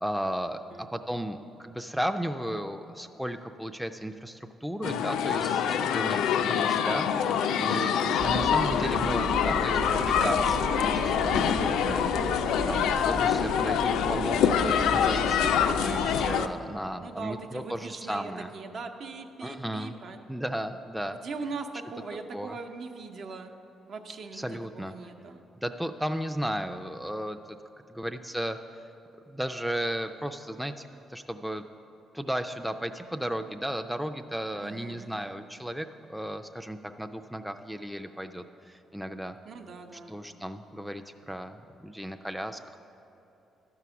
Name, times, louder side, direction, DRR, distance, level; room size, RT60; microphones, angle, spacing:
voice 1, 0.0-18.5 19.4-19.9 20.3-21.2 22.3-22.6 24.3-24.9 25.6-27.4 27.9-28.6 29.3-31.6 32.1-39.4 40.1-42.8, equal, ahead, 6 dB, 0.4 m, -35 dB
sound 1, 4.8-16.5, left 8 dB, 85° left, 0.3 m, -25 dB
voice 2, 8.0-8.8 12.7-13.1 17.0-20.2 21.2-23.5 23.9-24.4 24.8-25.4 34.5-35.3 39.4-40.2, right 4 dB, 60° right, 5 dB, 0.8 m, -40 dB
sound 2, 8.2-16.4, right 2 dB, 90° right, 0.9 m, -36 dB
12.0 x 4.7 x 6.9 m, 2.8 s
cardioid pair, 90°, 0 cm